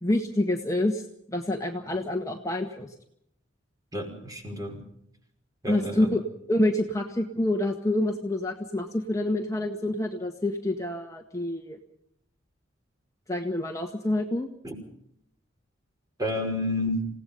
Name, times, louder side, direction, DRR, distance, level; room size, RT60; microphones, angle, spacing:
voice 1, 0.0-2.9 5.7-6.2 6.5-11.8 13.3-14.5, left 1 dB, 15° left, 2 dB, 1.8 m, -27 dB
voice 2, 3.9-4.8 5.6-6.1 14.6-14.7 16.2-17.1, left 1 dB, 20° right, 4 dB, 5.7 m, -30 dB
28.5 x 17.5 x 5.5 m, 0.70 s
head